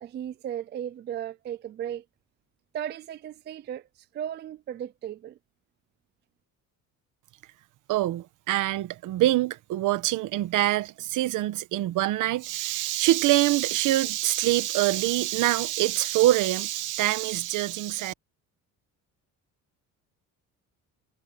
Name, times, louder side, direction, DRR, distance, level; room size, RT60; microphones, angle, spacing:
voice 1, 0.0-2.0 2.7-3.9 4.1-5.4, right 10 dB, 30° right, 0.4 m, -35 dB
voice 2, 7.9-18.1, right 15 dB, 65° right, 1.3 m, -25 dB
cardioid pair, 170°, 33 cm